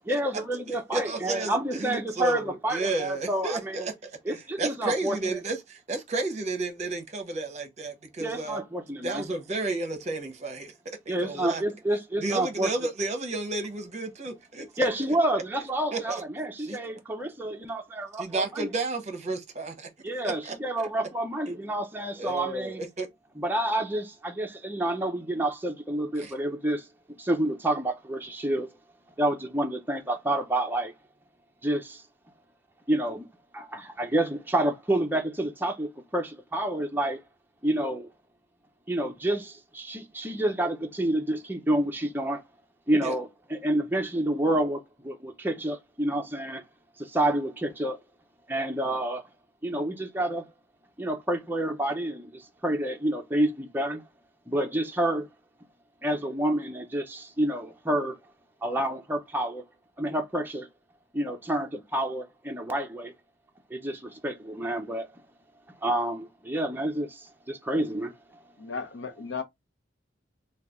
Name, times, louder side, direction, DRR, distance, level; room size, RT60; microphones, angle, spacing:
voice 1, 0.1-3.9 4.2-5.4 8.2-9.2 11.1-12.7 14.8-18.7 20.0-22.8 23.4-26.9 27.2-28.7 29.2-30.9 31.6-32.0 32.9-33.3 33.5-37.2 37.6-38.1 38.9-42.4 42.9-46.6 47.0-48.0 48.5-49.2 49.6-50.4 51.0-54.0 54.5-55.3 56.0-58.2 58.6-59.6 60.0-60.7 61.1-63.1 63.7-65.2 65.8-68.1, right 1 dB, 10° right, 0.6 m, -29 dB
voice 2, 0.7-8.6 9.0-10.7 11.1-11.6 12.2-14.8 15.9-16.2 16.6-16.8 18.2-19.9 20.2-20.5 22.2-23.1 26.2-26.3 43.0-43.1, right 2 dB, 40° right, 0.9 m, -32 dB
voice 3, 68.6-69.4, left 5 dB, 75° left, 0.7 m, -35 dB
3.2 x 2.3 x 3.5 m
head